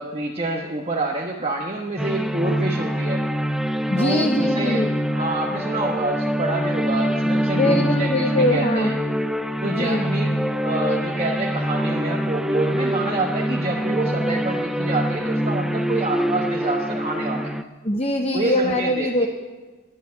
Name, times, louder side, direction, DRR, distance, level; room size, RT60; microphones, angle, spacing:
voice 1, 0.0-3.2 3.9-4.8 5.1-8.9 9.6-10.2 10.6-17.6 18.3-19.3, right 2 dB, 25° right, -1 dB, 1.2 m, -27 dB
sound 1, 2.0-17.6, equal, ahead, 0.4 m, -24 dB
voice 2, 3.9-4.9 7.5-8.9 9.6-10.1 17.8-19.3, left 1 dB, 25° left, 3 dB, 0.8 m, -22 dB
12.0 x 11.0 x 9.6 m, 1.3 s
head